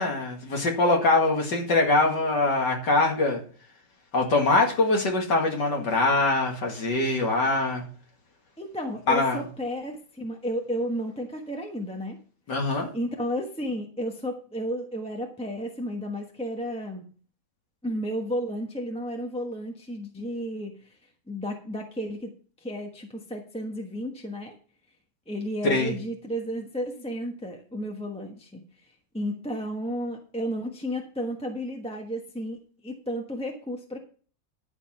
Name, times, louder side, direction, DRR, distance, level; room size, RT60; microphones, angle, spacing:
voice 1, 0.0-3.4 4.1-7.8 9.1-9.4 12.5-12.9 25.6-25.9, left 2 dB, 70° left, 1 dB, 2.9 m, -23 dB
voice 2, 8.6-12.2 12.9-17.0 17.8-20.8 21.3-22.3 22.6-24.5 25.3-28.6 29.1-32.6 32.8-34.0, equal, 5° left, 2 dB, 0.8 m, -32 dB
12.0 x 5.2 x 5.9 m, 0.41 s
omnidirectional pair, 2.0 m